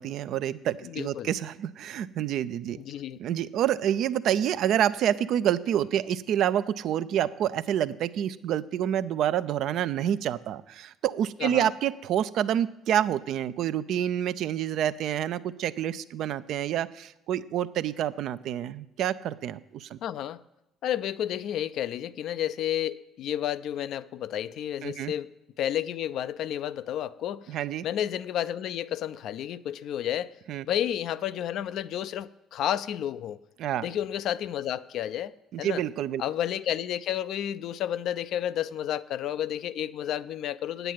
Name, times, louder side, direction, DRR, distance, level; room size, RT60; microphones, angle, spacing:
voice 1, 0.0-2.8 3.2-20.0 24.8-25.1 27.5-27.9 30.5-30.7 33.6-33.9 35.5-36.2, right 10 dB, 60° right, 14 dB, 0.5 m, -28 dB
voice 2, 0.8-1.3 2.7-3.2 11.4-11.7 20.0-20.4 20.8-27.6 27.8-30.3 30.7-33.4 33.8-35.8 36.2-40.9, left 11 dB, 60° left, 15 dB, 0.4 m, -31 dB
9.1 x 8.0 x 7.4 m, 0.91 s
hypercardioid pair, 50°, 0 cm